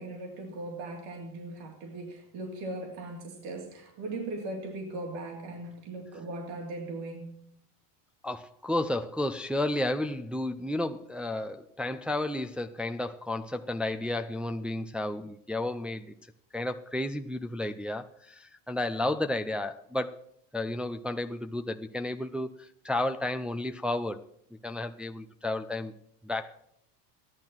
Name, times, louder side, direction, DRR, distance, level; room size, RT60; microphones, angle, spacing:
voice 1, 0.0-7.4, right 2 dB, 70° right, 1 dB, 2.9 m, -39 dB
voice 2, 8.2-16.1 16.5-20.2 20.5-24.2 24.6-25.9 26.2-26.6, left 1 dB, ahead, 6 dB, 0.5 m, -32 dB
14.5 x 11.0 x 6.0 m, 0.70 s
supercardioid pair, 115°, 48 cm